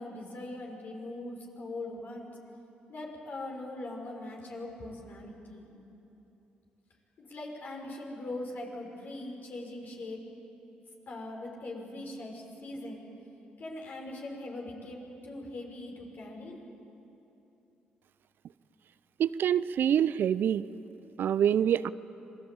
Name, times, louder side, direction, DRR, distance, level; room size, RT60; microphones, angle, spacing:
voice 1, 0.0-2.3 2.9-5.7 7.2-10.2 11.1-13.0 13.6-15.0 15.2-16.6, left 2 dB, 55° left, 0 dB, 6.5 m, -41 dB
voice 2, 19.2-20.6 21.2-21.9, right 9 dB, 65° right, 16 dB, 0.6 m, -26 dB
26.5 x 19.5 x 8.8 m, 2.9 s
hypercardioid pair, 50°, 4 cm